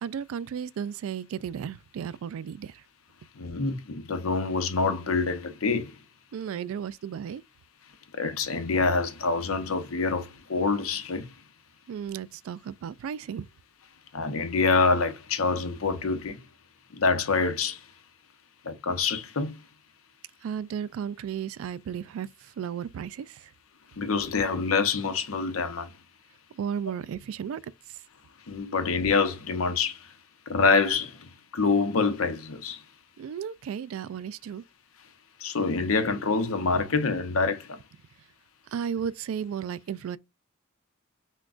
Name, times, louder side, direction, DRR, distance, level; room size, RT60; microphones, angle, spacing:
voice 1, 0.0-2.8 6.3-7.4 11.9-13.5 20.4-23.5 26.5-27.6 33.2-34.6 38.7-40.2, right 8 dB, 80° right, 0.3 m, -34 dB
voice 2, 3.3-6.0 8.1-11.3 14.1-16.5 16.9-17.9 18.6-19.6 24.0-25.9 28.5-30.1 30.5-32.8 35.4-37.8, left 4 dB, 85° left, 0.7 m, -26 dB
5.9 x 2.2 x 2.4 m
head